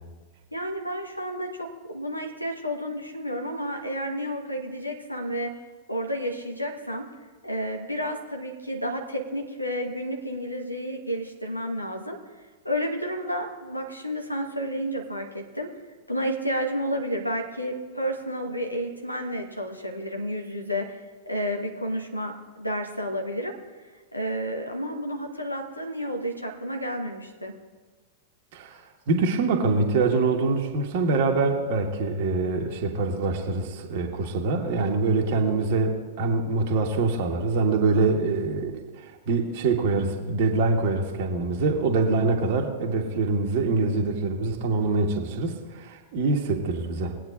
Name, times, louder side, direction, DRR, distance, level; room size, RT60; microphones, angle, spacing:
voice 1, 0.5-5.5 5.9-7.1 7.4-12.2 12.6-15.7 16.1-21.0 21.3-23.5 24.1-27.5, equal, 90° left, 3 dB, 1.2 m, -31 dB
voice 2, 29.1-47.2, right 3 dB, 50° right, 2 dB, 1.4 m, -24 dB
21.0 x 8.6 x 2.6 m, 1.3 s
figure-of-eight pair, 95°, 0 cm